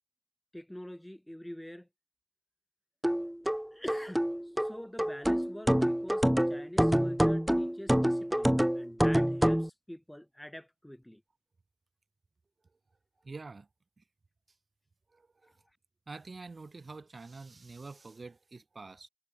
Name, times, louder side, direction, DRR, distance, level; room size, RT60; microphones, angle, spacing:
voice 1, 0.5-1.9 3.7-4.3 4.6-11.2, equal, 10° left, 3.9 m, -46 dB
sound 1, 3.0-9.7, equal, 10° right, 0.5 m, -27 dB
voice 2, 13.2-13.7 14.0-14.1 15.1-15.5 16.1-19.1, right 3 dB, 85° right, 1.2 m, -46 dB
wide cardioid pair, 50°, 0 cm